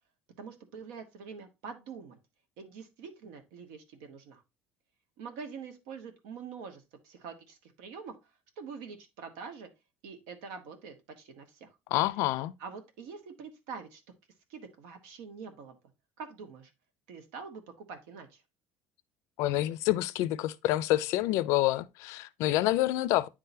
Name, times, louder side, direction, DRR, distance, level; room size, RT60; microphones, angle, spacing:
voice 1, 0.4-2.2 2.6-4.4 5.2-8.1 8.6-9.7 10.0-11.7 12.6-14.0 14.5-15.8 16.2-16.7 17.1-18.4, right 5 dB, 85° right, 1.5 m, -45 dB
voice 2, 11.9-12.5 19.4-23.3, left 16 dB, 65° left, 0.4 m, -27 dB
9.8 x 3.8 x 2.7 m
cardioid pair, 155°, 5 cm